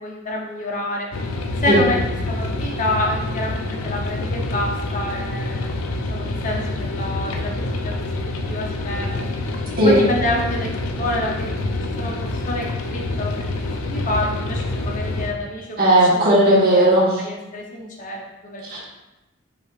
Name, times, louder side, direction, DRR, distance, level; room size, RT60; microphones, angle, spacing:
voice 1, 0.0-1.1 1.6-2.0 2.3-7.9 8.5-9.2 9.8-10.7 11.0-11.5 12.0-12.1 12.5-12.7 12.9-16.2 16.7-16.8 17.2-18.6, left 1 dB, 40° left, -1 dB, 0.7 m, -27 dB
sound 1, 1.1-15.3, left 2 dB, 85° left, 0.5 m, -27 dB
voice 2, 15.8-17.2 18.7-18.8, right 1 dB, 45° right, -7 dB, 1.2 m, -15 dB
5.3 x 3.4 x 2.4 m, 0.99 s
head